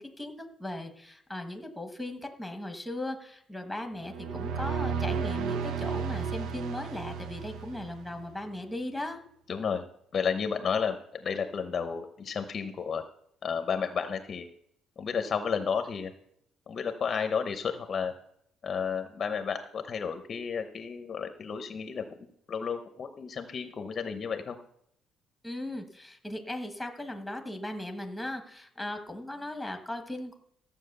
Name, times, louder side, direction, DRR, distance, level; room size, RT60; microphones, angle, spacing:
voice 1, 0.0-9.2 25.4-30.3, left 1 dB, ahead, 5 dB, 1.3 m, -38 dB
sound 1, 4.0-8.3, right 6 dB, 65° right, 0.8 m, -33 dB
voice 2, 9.5-9.8 10.1-13.0 13.4-14.4 15.0-16.1 16.7-18.1 18.6-22.0 22.5-24.6, left 6 dB, 30° left, 8 dB, 0.8 m, -32 dB
14.5 x 7.3 x 6.6 m, 0.73 s
cardioid pair, 175°, 0 cm